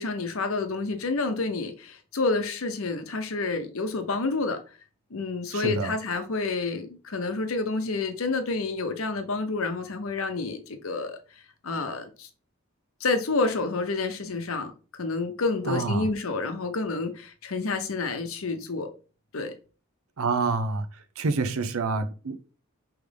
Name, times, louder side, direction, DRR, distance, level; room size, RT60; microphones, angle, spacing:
voice 1, 0.0-4.6 5.1-11.2 11.6-12.3 13.0-18.9 19.3-19.5, left 3 dB, 75° left, 0.8 m, -29 dB
voice 2, 5.5-5.9 15.7-16.1 20.2-20.9 21.2-22.5, right 3 dB, 90° right, 0.6 m, -27 dB
5.0 x 3.1 x 3.4 m
head